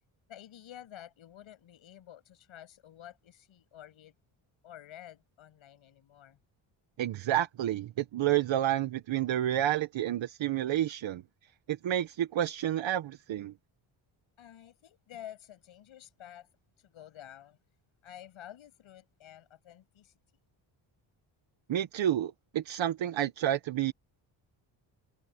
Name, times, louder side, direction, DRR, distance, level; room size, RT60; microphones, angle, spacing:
voice 1, 0.3-4.2 4.6-6.4 14.4-16.5 16.8-17.6 18.0-20.1, left 11 dB, 75° left, 7.5 m, -50 dB
voice 2, 7.0-11.2 11.7-13.5 21.7-23.9, right 12 dB, 70° right, 1.3 m, -30 dB
cardioid pair, 125°, 48 cm